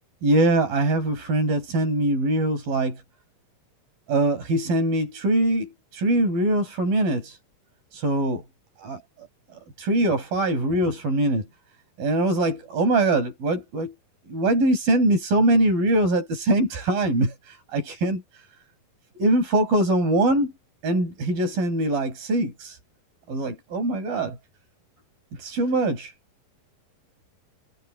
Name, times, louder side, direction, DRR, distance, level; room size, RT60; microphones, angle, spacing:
voice 1, 0.2-3.0 4.1-7.4 7.9-8.4 8.8-9.3 9.5-11.5 12.0-13.9 14.3-18.4 19.1-20.5 20.8-22.8 23.3-24.4 25.3-26.1, right 1 dB, 75° right, 8.5 m, -23 dB
omnidirectional pair, 4.1 m